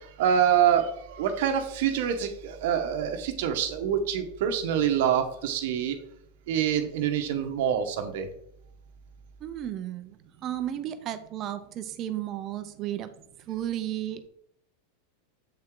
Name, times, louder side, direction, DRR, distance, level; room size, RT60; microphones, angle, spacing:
voice 1, 0.2-6.0 6.5-8.3, right 9 dB, 65° right, 6 dB, 0.9 m, -26 dB
voice 2, 9.4-13.1 13.5-14.3, right 11 dB, 35° right, 9 dB, 0.5 m, -33 dB
7.5 x 4.5 x 3.7 m, 0.71 s
supercardioid pair, 150°, 0 cm